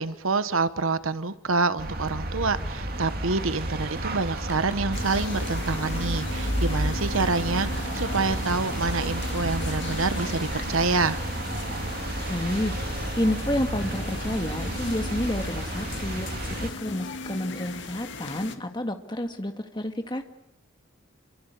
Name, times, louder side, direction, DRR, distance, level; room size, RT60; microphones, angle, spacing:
voice 1, 0.0-11.2, right 3 dB, 80° right, 13 dB, 1.1 m, -27 dB
sound 1, 1.8-16.7, right 1 dB, 45° right, 2.7 m, -31 dB
Rain, 3.5-10.2, right 1 dB, 10° right, 6.0 m, -48 dB
sound 2, 4.9-18.6, left 3 dB, 55° left, 2.1 m, -38 dB
voice 2, 12.3-12.7 13.1-20.2, left 1 dB, 20° left, 6 dB, 1.9 m, -30 dB
28.0 x 24.5 x 8.3 m, 0.85 s
head